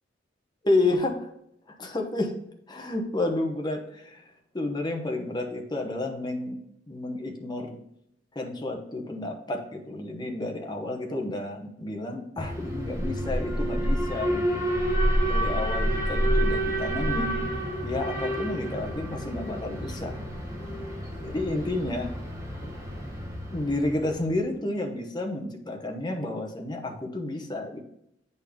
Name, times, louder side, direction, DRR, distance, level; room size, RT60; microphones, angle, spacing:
voice 1, 0.6-1.3 1.8-2.3 2.7-4.3 4.5-6.6 6.9-7.8 8.3-14.7 15.3-17.5 17.8-20.2 21.2-22.1 22.6-22.7 23.5-27.8, left 2 dB, 25° left, 2 dB, 1.0 m, -30 dB
Alarm, 12.4-24.4, equal, 15° right, 1.2 m, -29 dB
8.5 x 4.1 x 3.5 m, 0.76 s
head